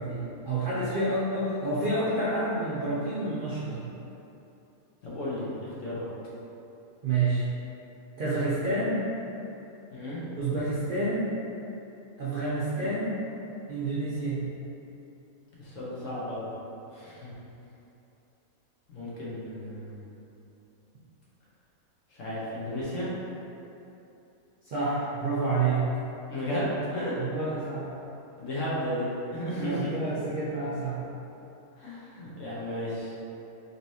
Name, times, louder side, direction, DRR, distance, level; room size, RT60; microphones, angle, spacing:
voice 1, 0.0-3.8 7.0-7.5 8.2-9.1 10.4-11.4 12.2-13.1 13.7-14.5 24.6-25.9 27.2-27.9 29.6-31.0, right 2 dB, 55° right, -9 dB, 0.6 m, -29 dB
voice 2, 5.0-6.1 9.9-10.2 12.7-12.9 15.6-16.5 16.9-17.3 18.9-20.0 22.1-23.1 26.3-27.1 28.4-29.9 31.8-33.1, equal, 70° left, -8 dB, 1.2 m, -33 dB
4.1 x 3.2 x 2.7 m, 2.8 s
omnidirectional pair, 1.4 m